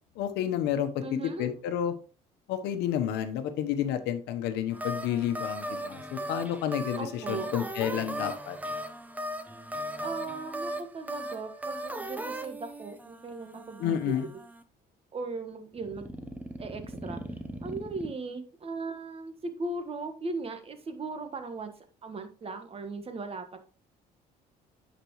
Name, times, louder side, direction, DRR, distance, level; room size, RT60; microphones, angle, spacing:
voice 1, 0.2-1.0 1.4-1.9 2.5-8.6 13.8-14.3, left 10 dB, 90° left, 9 dB, 1.0 m, -30 dB
voice 2, 1.0-1.5 6.9-7.5 10.0-14.3 15.1-16.1 16.6-17.2 17.6-21.7 22.0-23.6, right 3 dB, 35° right, 7 dB, 1.5 m, -38 dB
sound 1, 4.7-14.6 15.8-18.1, right 1 dB, 10° right, 0.9 m, -38 dB
10.0 x 5.2 x 3.1 m, 0.36 s
cardioid pair, 110°, 17 cm